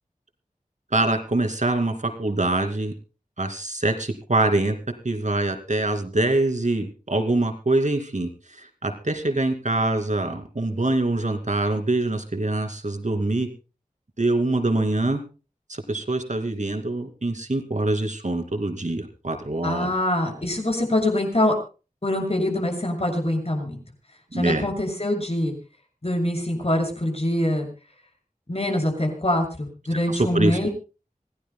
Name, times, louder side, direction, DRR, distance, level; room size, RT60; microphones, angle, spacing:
voice 1, 0.9-2.9 3.4-4.8 5.0-13.5 14.2-15.2 15.7-19.9 24.3-24.7 30.1-30.7, right 2 dB, 55° right, 6 dB, 2.5 m, -24 dB
voice 2, 19.6-21.5 22.0-23.8 24.3-25.5 26.0-27.7 28.5-30.7, left 1 dB, 45° left, 3 dB, 6.8 m, -24 dB
26.0 x 17.0 x 2.2 m, 0.34 s
wide cardioid pair, 55°, 15 cm